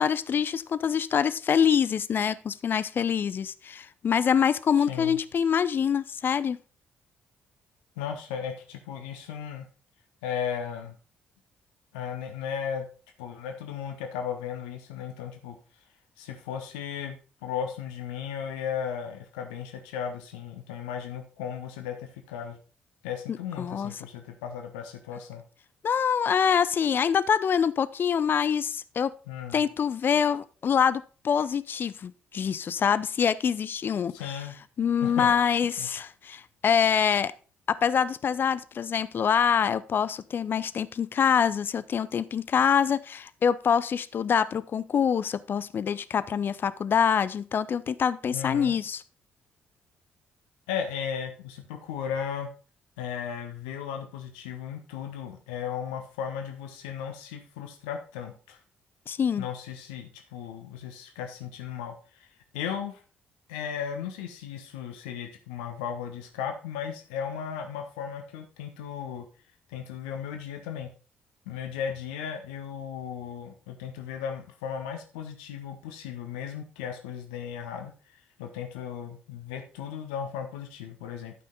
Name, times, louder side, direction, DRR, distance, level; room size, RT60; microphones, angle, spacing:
voice 1, 0.0-6.6 23.6-23.9 25.8-29.1 29.5-34.2 34.8-37.3 37.7-49.0 59.1-59.4, left 7 dB, 40° left, 16 dB, 0.5 m, -25 dB
voice 2, 4.9-5.2 8.0-9.7 10.2-11.0 11.9-12.9 13.2-15.6 16.2-22.6 23.0-25.4 29.3-29.7 34.1-34.5 35.0-35.3 35.8-35.9 48.3-48.8 50.7-52.5 53.0-58.6 59.4-62.3 62.5-63.0 63.5-69.2 69.7-70.9 71.5-77.9 78.4-81.3, left 8 dB, 70° left, 4 dB, 1.1 m, -36 dB
12.5 x 5.6 x 3.9 m, 0.37 s
figure-of-eight pair, 45°, 5 cm